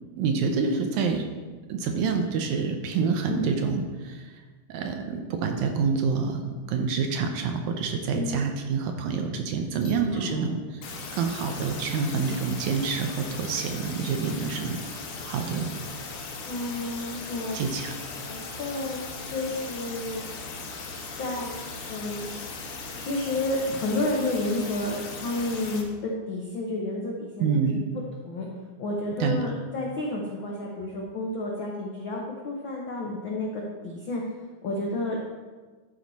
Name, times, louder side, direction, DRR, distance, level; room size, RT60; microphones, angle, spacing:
voice 1, 0.2-1.3 1.7-4.3 4.7-10.8 11.1-14.8 15.2-15.7 17.5-17.9 27.4-27.8 29.2-29.4, right 5 dB, 75° right, 4 dB, 2.0 m, -27 dB
voice 2, 8.1-8.5 16.5-17.6 18.2-19.0 19.3-20.3 21.2-21.6 21.9-22.3 23.0-27.7 28.2-28.5 28.8-34.2 34.6-35.2, left 2 dB, 80° left, -2 dB, 1.0 m, -31 dB
sound 1, 9.8-10.5 10.8-25.8, left 4 dB, 65° left, 2.0 m, -38 dB
12.5 x 4.8 x 4.1 m, 1.3 s
omnidirectional pair, 3.7 m